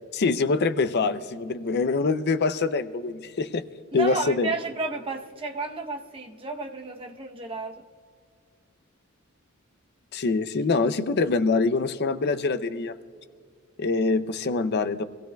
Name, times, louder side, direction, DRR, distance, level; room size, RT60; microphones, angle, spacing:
voice 1, 0.1-3.6 3.9-4.5 10.1-12.9 13.8-15.0, left 3 dB, 50° left, 13 dB, 0.5 m, -24 dB
voice 2, 3.9-7.9, right 3 dB, 25° right, 3 dB, 0.8 m, -32 dB
24.5 x 15.5 x 2.3 m, 2.1 s
head